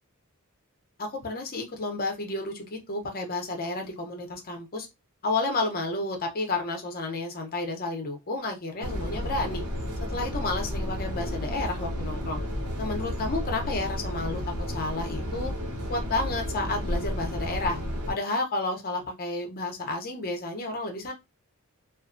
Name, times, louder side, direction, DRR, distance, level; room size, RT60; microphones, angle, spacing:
voice 1, 1.0-4.9 5.2-9.6 10.1-12.4 12.8-14.4 14.7-15.5 15.9-17.8 18.1-21.1, left 2 dB, 40° left, 0.7 m, -31 dB
sound 1, 8.8-18.1, equal, 85° right, 0.8 m, -32 dB
2.5 x 2.2 x 2.5 m
head